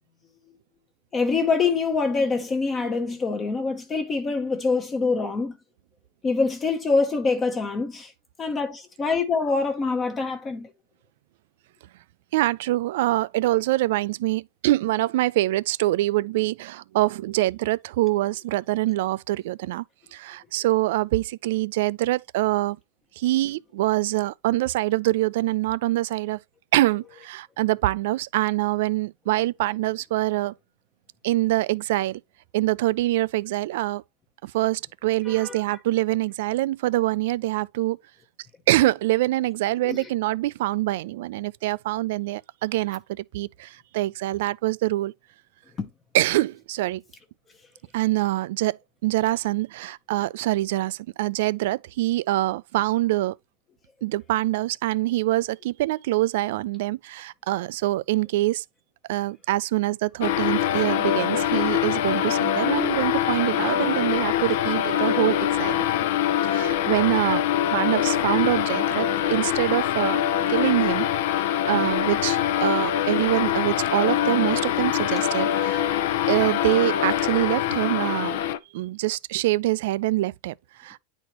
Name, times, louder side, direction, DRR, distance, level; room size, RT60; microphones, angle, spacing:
voice 1, 1.1-5.5 6.2-8.1 8.4-10.7 35.3-35.5 39.8-40.1 45.8-45.9, left 4 dB, 20° left, 0.8 m, -25 dB
voice 2, 12.3-19.8 20.1-22.8 23.2-26.4 26.7-30.5 31.2-32.2 32.5-34.0 34.4-38.0 38.7-45.1 46.1-47.0 47.9-48.8 49.0-53.3 54.0-58.6 59.1-66.1 66.4-67.4 67.7-70.2 70.5-71.1 71.4-78.5 78.7-81.0, right 17 dB, 65° right, 0.4 m, -25 dB
sound 1, 60.2-78.6, left 11 dB, 65° left, 0.6 m, -24 dB
9.8 x 4.2 x 3.0 m
supercardioid pair, 160°, 0 cm